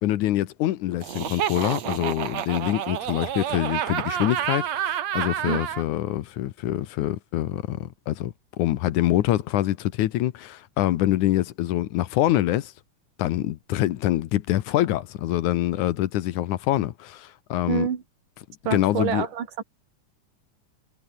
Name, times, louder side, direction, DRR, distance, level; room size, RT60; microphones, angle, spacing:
voice 1, 0.0-12.7 13.2-17.9 18.7-19.3, left 14 dB, 75° left, 2.4 m, -25 dB
Laughter, 1.0-5.8, right 10 dB, 60° right, 2.6 m, -29 dB
voice 2, 17.7-18.0 18.7-19.6, right 8 dB, 85° right, 4.1 m, -27 dB
omnidirectional pair, 3.6 m